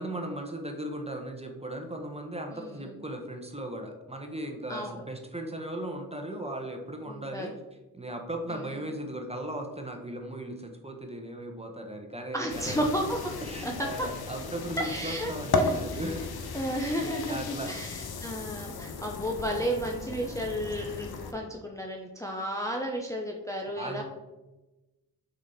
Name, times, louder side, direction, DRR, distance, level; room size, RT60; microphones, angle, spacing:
voice 1, 0.0-7.5 7.9-12.9 13.4-16.6 17.0-17.7 23.8-24.0, right 1 dB, 15° right, 3 dB, 1.1 m, -37 dB
voice 2, 2.5-3.0 4.7-5.0 7.1-7.5 8.5-8.7 12.3-13.3 13.6-14.1 14.8-16.0 16.5-24.0, equal, 10° left, 0 dB, 0.8 m, -33 dB
sound 1, 12.5-21.3, left 3 dB, 80° left, 0.7 m, -35 dB
6.0 x 4.2 x 4.3 m, 1.1 s
cardioid pair, 50°, 37 cm